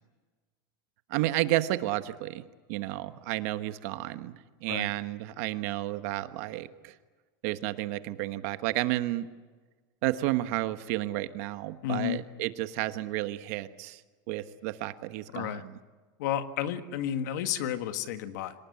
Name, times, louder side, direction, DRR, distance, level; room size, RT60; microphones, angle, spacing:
voice 1, 1.1-2.4 2.7-4.3 4.6-6.9 7.4-9.3 10.0-14.0 14.3-15.8, right 16 dB, 50° right, 11 dB, 1.2 m, -31 dB
voice 2, 11.8-12.2 15.3-15.6 16.2-18.5, left 10 dB, 65° left, 10 dB, 1.7 m, -31 dB
25.0 x 19.0 x 9.8 m, 1.4 s
supercardioid pair, 175°, 11 cm